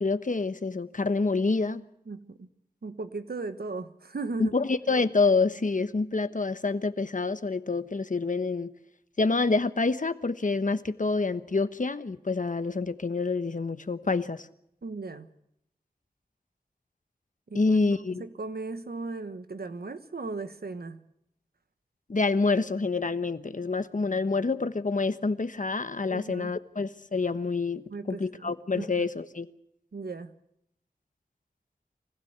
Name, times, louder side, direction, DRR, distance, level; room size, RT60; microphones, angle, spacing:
voice 1, 0.0-1.8 4.4-8.7 9.2-14.5 17.5-18.2 22.1-29.5, left 3 dB, 55° left, 1.1 m, -27 dB
voice 2, 2.1-2.5 2.8-4.5 14.8-15.3 17.5-17.8 18.1-21.0 26.1-26.5 27.9-29.1 29.9-30.3, right 3 dB, 80° right, 1.3 m, -37 dB
24.5 x 16.0 x 8.1 m
wide cardioid pair, 45°, 16 cm